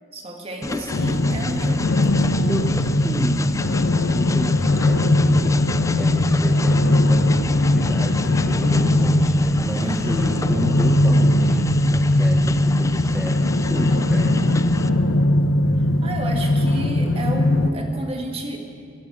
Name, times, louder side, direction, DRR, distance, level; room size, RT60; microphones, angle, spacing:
voice 1, 0.1-2.3 9.8-10.3 15.8-18.6, right 1 dB, 30° right, 2 dB, 1.8 m, -31 dB
Train, 0.6-14.9, left 3 dB, 15° left, 0.4 m, -31 dB
sound 1, 0.9-17.7, left 1 dB, 75° left, 0.8 m, -19 dB
voice 2, 2.4-14.5, equal, 5° right, -1 dB, 0.8 m, -32 dB
13.0 x 12.0 x 7.9 m, 2.3 s
head